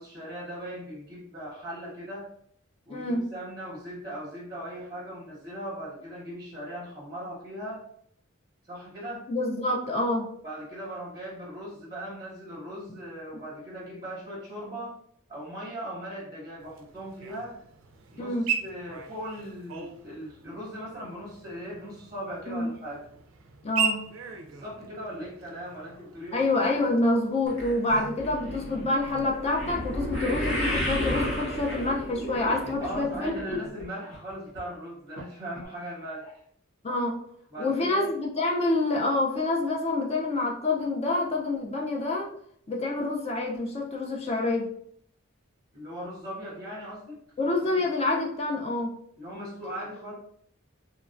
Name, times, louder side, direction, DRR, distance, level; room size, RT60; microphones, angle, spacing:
voice 1, 0.0-2.3 2.9-7.9 8.6-9.3 10.4-14.9 15.3-17.6 18.1-18.4 18.6-23.1 24.6-26.4 32.8-36.4 37.5-38.1 45.7-47.8 49.2-50.1, equal, 20° right, -4 dB, 0.7 m, -39 dB
voice 2, 2.9-3.2 9.3-10.3 18.2-18.5 22.5-22.7 23.6-24.1 26.3-33.6 36.8-37.2 37.6-42.3 42.7-44.7 47.4-49.0, left 2 dB, 30° left, -1 dB, 0.4 m, -27 dB
sound 1, 16.6-33.0, right 7 dB, 65° right, 0.4 m, -39 dB
sound 2, 27.5-33.9 34.1-34.6 35.2-35.3 35.6-35.7, equal, 60° left, 0.9 m, -32 dB
3.0 x 2.2 x 2.4 m, 0.67 s
head